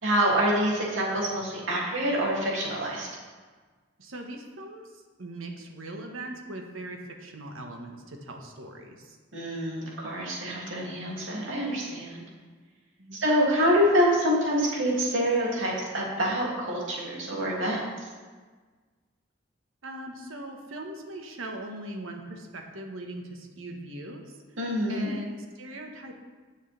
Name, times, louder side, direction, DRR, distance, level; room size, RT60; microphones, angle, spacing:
voice 1, 0.0-3.1 9.3-12.2 13.2-18.1 24.6-25.1, equal, 70° right, -4 dB, 2.8 m, -26 dB
voice 2, 4.0-9.2 13.0-13.2 19.8-24.4 24.9-26.1, right 1 dB, 90° right, 2 dB, 1.5 m, -40 dB
19.0 x 6.5 x 3.5 m, 1.4 s
head